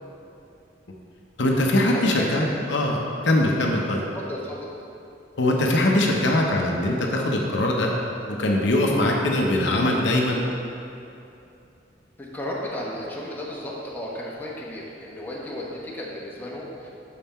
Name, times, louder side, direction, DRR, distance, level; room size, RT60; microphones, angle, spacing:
voice 1, 1.4-3.0 3.2-4.0 5.4-7.9 8.3-10.4, left 1 dB, 70° left, 0 dB, 0.8 m, -22 dB
voice 2, 1.9-2.4 4.1-4.7 12.2-16.9, left 1 dB, 10° left, -5 dB, 1.0 m, -34 dB
6.6 x 5.5 x 4.2 m, 2.7 s
head